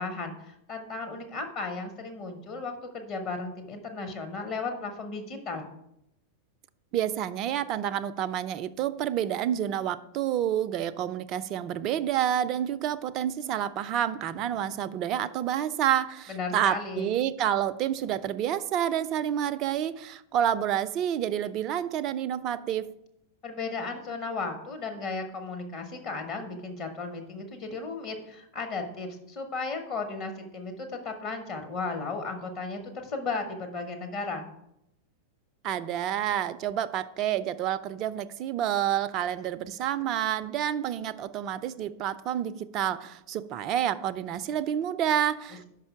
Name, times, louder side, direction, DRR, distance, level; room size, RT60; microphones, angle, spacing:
voice 1, 0.0-5.7 16.3-17.1 23.4-34.5, left 3 dB, 40° left, 5 dB, 1.0 m, -35 dB
voice 2, 6.9-22.9 35.6-45.6, right 10 dB, 35° right, 14 dB, 0.3 m, -29 dB
5.5 x 5.3 x 5.8 m, 0.80 s
figure-of-eight pair, 90°, 0 cm